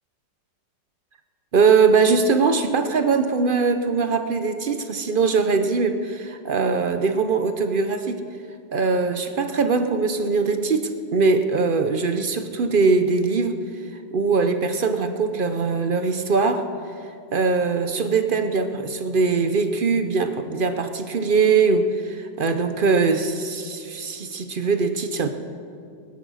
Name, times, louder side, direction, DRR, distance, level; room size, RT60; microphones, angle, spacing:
voice 1, 1.5-8.2 8.7-13.6 14.1-16.6 17.3-25.3, right 4 dB, 55° right, 8 dB, 0.6 m, -21 dB
20.0 x 10.5 x 6.3 m, 2.5 s
omnidirectional pair, 1.9 m